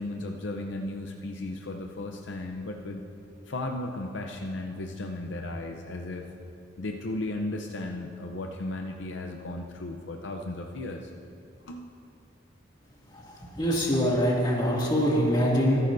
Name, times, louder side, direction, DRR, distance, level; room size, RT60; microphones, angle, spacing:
voice 1, 0.0-3.0 3.5-6.3 6.8-11.1 11.6-11.9, left 2 dB, 65° left, 3 dB, 0.7 m, -35 dB
voice 2, 13.1-15.8, equal, 25° left, -5 dB, 2.3 m, -24 dB
23.5 x 9.7 x 2.7 m, 2.6 s
head